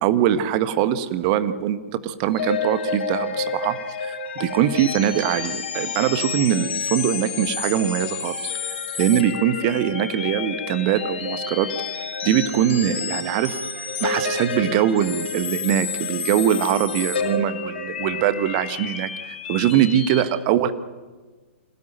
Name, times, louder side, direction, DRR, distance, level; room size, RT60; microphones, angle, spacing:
voice 1, 0.0-8.5 9.0-13.6 14.0-20.7, right 10 dB, 35° right, 12 dB, 1.5 m, -22 dB
sound 1, 2.3-20.2, left 5 dB, 55° left, 5.3 m, -30 dB
26.0 x 17.5 x 9.1 m, 1.3 s
figure-of-eight pair, 115°, 7 cm